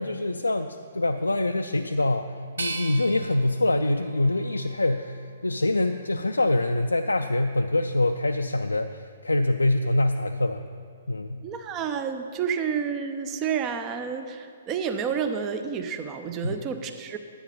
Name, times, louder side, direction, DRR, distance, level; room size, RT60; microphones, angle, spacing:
voice 1, 0.0-10.6 11.1-11.4 16.4-16.6, left 2 dB, 85° left, 5 dB, 0.4 m, -25 dB
sound 1, 2.6-5.5 6.0-6.9, right 3 dB, 70° right, 0.8 m, -39 dB
voice 2, 11.4-17.2, right 7 dB, 25° right, 8 dB, 0.6 m, -30 dB
10.5 x 8.3 x 5.5 m, 2.4 s
figure-of-eight pair, 125°, 0 cm